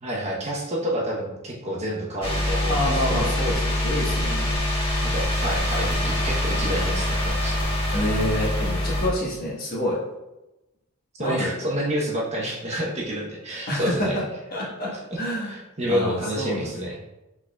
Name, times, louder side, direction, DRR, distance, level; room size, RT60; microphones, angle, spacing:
voice 1, 0.0-3.3 5.0-7.7 11.2-14.2 14.9-15.0 15.4-17.0, equal, 30° right, -3 dB, 0.8 m, -29 dB
sound 1, 2.2-9.1, left 1 dB, 25° left, 1.2 m, -24 dB
voice 2, 2.7-4.6 7.9-10.0 11.2-11.5 13.7-14.2 14.5-15.6 15.9-16.7, left 1 dB, 45° left, -5 dB, 1.3 m, -27 dB
5.7 x 3.8 x 2.2 m, 0.97 s
head